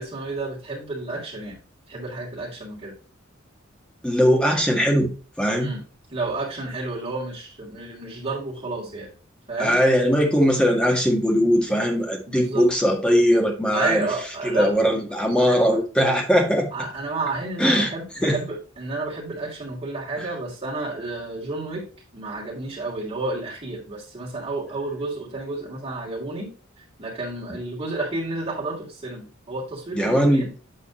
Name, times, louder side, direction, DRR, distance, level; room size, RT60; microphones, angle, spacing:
voice 1, 0.0-1.6 1.9-2.9 5.6-5.8 6.1-9.1 9.5-9.8 12.2-12.6 13.7-14.8 15.4-15.8 16.7-21.8 22.1-30.5, right 2 dB, 30° right, -5 dB, 3.1 m, -31 dB
voice 2, 4.0-5.1 5.4-5.7 9.6-14.1 14.4-16.7 17.6-17.9 18.2-18.4 20.2-20.3 29.9-30.5, equal, 5° left, 1 dB, 1.6 m, -20 dB
8.9 x 4.1 x 4.1 m, 0.36 s
head